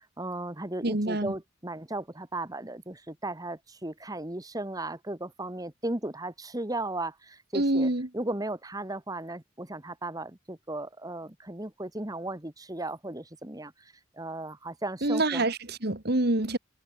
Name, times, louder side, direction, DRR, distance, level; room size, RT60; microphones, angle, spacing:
voice 1, 0.0-15.4, right 2 dB, 20° right, 1.7 m, -36 dB
voice 2, 0.8-1.3 7.5-8.1 15.0-16.6, right 2 dB, 55° right, 2.0 m, -26 dB
head